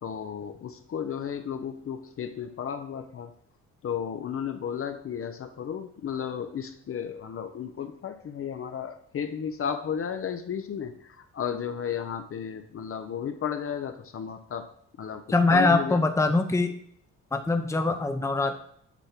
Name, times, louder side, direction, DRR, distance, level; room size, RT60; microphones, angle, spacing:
voice 1, 0.0-3.3 3.8-14.7 15.0-15.2 15.5-16.0, left 8 dB, 45° left, 8 dB, 0.7 m, -33 dB
voice 2, 15.3-16.7 17.3-18.6, left 3 dB, 10° left, 7 dB, 0.7 m, -23 dB
8.3 x 3.4 x 5.8 m, 0.64 s
cardioid pair, 90°, 30 cm